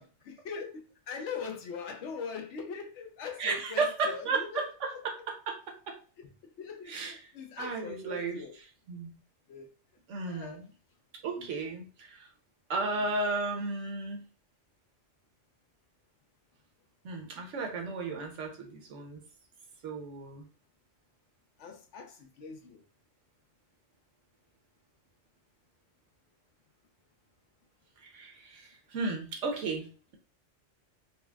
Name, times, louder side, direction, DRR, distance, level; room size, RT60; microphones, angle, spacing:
voice 1, 0.0-5.2 6.2-8.6 9.5-9.7 10.2-10.6 11.4-11.5 21.6-22.8 28.5-28.6, left 5 dB, 75° left, 4 dB, 1.0 m, -42 dB
voice 2, 3.4-4.9 5.5-6.0 6.9-7.1 7.6-8.4 8.9-9.2 10.1-10.6 11.2-12.3 12.7-14.3 17.0-19.2 19.8-20.4 28.0-30.2, right 3 dB, 80° right, 3 dB, 1.1 m, -34 dB
4.2 x 2.0 x 2.3 m, 0.37 s
omnidirectional pair, 1.2 m